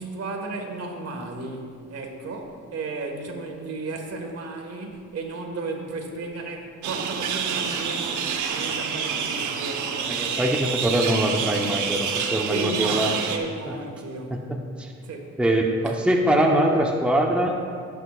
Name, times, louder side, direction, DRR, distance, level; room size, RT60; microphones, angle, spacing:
voice 1, 0.0-10.5 12.5-13.0 13.3-14.5 15.0-15.4 15.8-15.9, right 3 dB, 55° right, 2 dB, 1.7 m, -34 dB
sound 1, 6.8-13.4, right 6 dB, 75° right, 1.0 m, -28 dB
voice 2, 10.1-13.1 13.7-13.8 14.3-14.4 14.8-14.9 15.4-17.6, right 1 dB, 5° right, 0 dB, 0.9 m, -23 dB
17.0 x 8.0 x 2.5 m, 2.2 s
cardioid pair, 90°, 30 cm